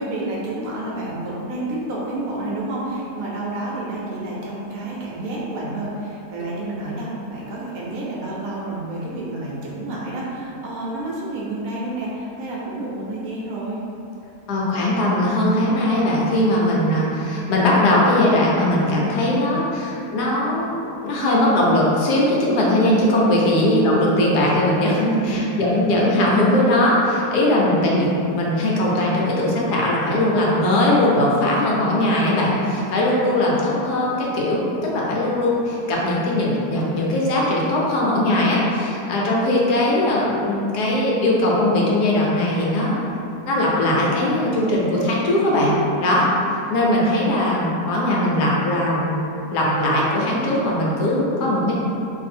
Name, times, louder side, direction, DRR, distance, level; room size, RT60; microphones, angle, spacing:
voice 1, 0.0-13.8 23.9-24.0 25.2-25.6, right 2 dB, 70° right, -5 dB, 1.0 m, -29 dB
voice 2, 14.5-43.0 43.4-45.7 46.0-46.3 46.7-49.2 49.5-51.8, left 1 dB, 80° left, -4 dB, 1.2 m, -19 dB
2.6 x 2.6 x 4.2 m, 2.9 s
omnidirectional pair, 1.7 m